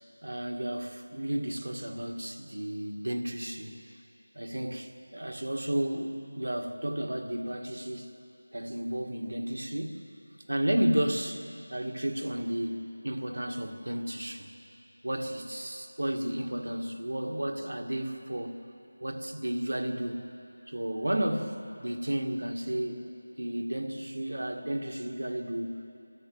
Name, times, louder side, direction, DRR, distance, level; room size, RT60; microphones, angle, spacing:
voice 1, 0.2-3.8 4.4-8.1 8.5-10.0 10.5-11.4 11.7-14.5 15.0-18.6 19.0-20.3 20.7-23.1 23.4-25.8, right 1 dB, 80° right, 4 dB, 2.0 m, -32 dB
27.5 x 13.5 x 8.0 m, 2.8 s
figure-of-eight pair, 180°, 0 cm